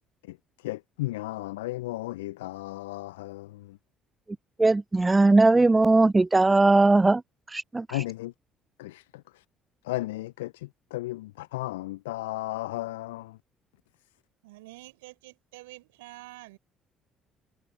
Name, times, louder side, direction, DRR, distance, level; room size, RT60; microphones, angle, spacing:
voice 1, 0.2-3.8 7.9-8.3 8.8-9.4 9.8-13.4, left 18 dB, 80° left, 0.4 m, -35 dB
voice 2, 4.6-7.2 7.5-7.9, right 2 dB, 20° right, 0.4 m, -19 dB
voice 3, 14.4-16.6, right 21 dB, 75° right, 5.0 m, -47 dB
hypercardioid pair, 50°, 0 cm